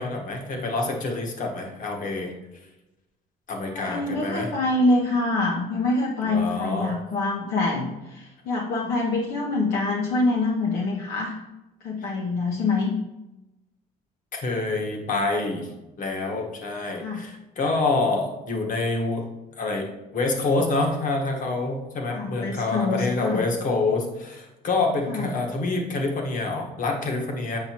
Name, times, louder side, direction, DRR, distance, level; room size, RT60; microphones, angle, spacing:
voice 1, 0.0-2.3 3.5-4.5 6.2-6.9 12.0-12.1 14.3-15.7 16.0-19.3 19.6-19.9 20.1-27.6, left 3 dB, 50° left, 1 dB, 1.3 m, -27 dB
voice 2, 3.7-11.4 11.8-12.9 17.0-17.2 22.1-23.4 25.1-25.3, left 2 dB, 70° left, -2 dB, 0.9 m, -25 dB
7.7 x 5.6 x 2.9 m, 1.0 s
cardioid pair, 110°, 17 cm